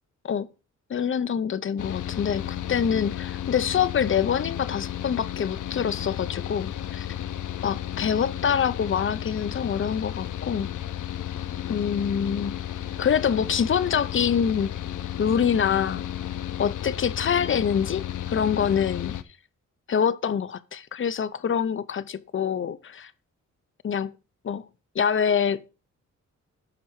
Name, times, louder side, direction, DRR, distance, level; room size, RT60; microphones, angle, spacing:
voice 1, 0.9-7.1 7.6-10.7 11.7-12.6 13.0-14.7 15.2-16.1 16.6-19.1 19.9-23.1 23.8-24.2 24.4-24.7 24.9-25.7, left 7 dB, 40° left, 0.7 m, -25 dB
Mechanical fan, 1.8-19.2, left 11 dB, 80° left, 0.8 m, -33 dB
11.5 x 4.5 x 6.4 m
wide cardioid pair, 120°, 30 cm